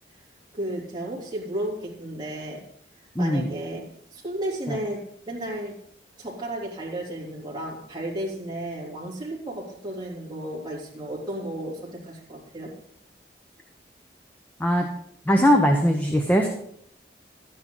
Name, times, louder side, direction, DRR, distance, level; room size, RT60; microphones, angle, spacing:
voice 1, 0.5-2.6 3.2-5.8 6.2-12.8, right 1 dB, 25° right, -4 dB, 3.1 m, -33 dB
voice 2, 3.1-3.5 4.7-4.8 14.6-14.9 15.3-16.5, equal, 10° left, 2 dB, 0.9 m, -20 dB
12.5 x 9.8 x 3.9 m, 0.70 s
head